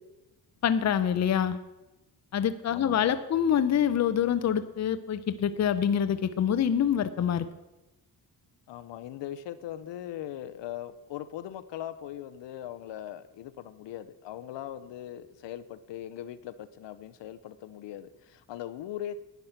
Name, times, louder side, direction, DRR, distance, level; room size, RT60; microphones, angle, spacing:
voice 1, 0.6-1.6 2.3-7.5, left 9 dB, 40° left, 11 dB, 0.7 m, -26 dB
voice 2, 2.7-3.2 8.7-19.2, left 11 dB, 85° left, 13 dB, 0.8 m, -40 dB
11.0 x 9.5 x 5.8 m, 1.0 s
cardioid pair, 140°, 42 cm